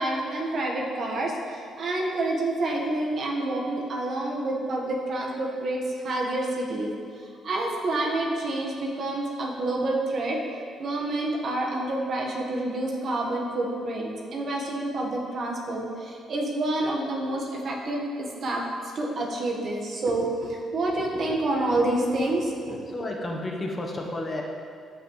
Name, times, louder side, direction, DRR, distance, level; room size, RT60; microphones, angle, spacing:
voice 1, 0.0-6.9 7.4-10.4 10.8-18.6 18.9-22.8, right 2 dB, 55° right, -1 dB, 1.5 m, -28 dB
voice 2, 22.9-24.4, left 1 dB, 25° left, 0 dB, 1.1 m, -31 dB
13.5 x 5.8 x 3.3 m, 2.3 s
cardioid pair, 90°, 0 cm